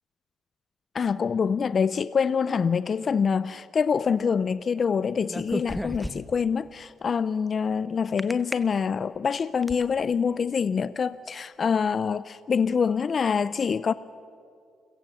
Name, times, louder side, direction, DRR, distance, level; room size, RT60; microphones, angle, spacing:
voice 1, 0.9-13.9, left 6 dB, 45° left, 0.5 m, -25 dB
sound 1, 5.2-6.5 8.2-8.5 9.2-9.8, equal, ahead, 1.0 m, -32 dB
29.5 x 16.5 x 7.8 m
cardioid pair, 90°, 0 cm